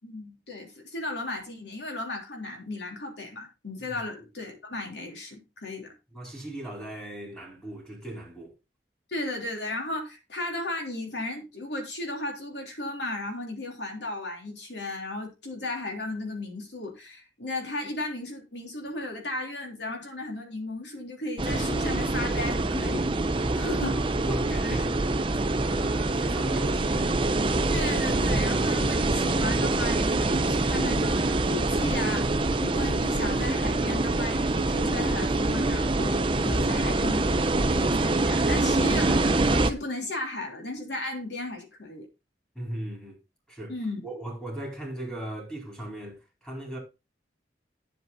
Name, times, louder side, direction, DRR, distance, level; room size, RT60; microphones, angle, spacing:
voice 1, 0.0-5.9 9.1-23.1 23.3-24.1 24.6-24.8 27.7-42.1 43.7-44.0, left 2 dB, 80° left, 3.3 m, -35 dB
voice 2, 6.1-8.5 23.4-25.1 25.6-27.1 42.5-43.2 43.5-43.7 44.0-46.8, right 1 dB, 5° left, 4.3 m, -38 dB
sound 1, 21.4-39.7, right 2 dB, 30° right, 0.7 m, -25 dB
9.6 x 7.6 x 4.0 m
head